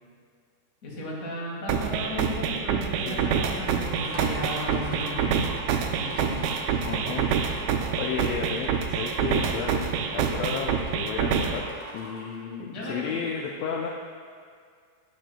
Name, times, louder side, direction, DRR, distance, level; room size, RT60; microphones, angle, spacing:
voice 1, 0.8-5.5 6.0-6.4 9.7-9.9 12.7-13.1, left 1 dB, 35° left, -5 dB, 1.7 m, -35 dB
sound 1, 1.7-11.7, right 7 dB, 80° right, 2.0 m, -27 dB
voice 2, 3.1-3.4 6.8-7.4 7.9-11.6 11.9-13.9, left 6 dB, 80° left, -1 dB, 1.5 m, -33 dB
sound 2, 3.9-12.4, right 1 dB, 15° left, 1.9 m, -42 dB
10.0 x 9.4 x 2.2 m, 2.1 s
omnidirectional pair, 3.5 m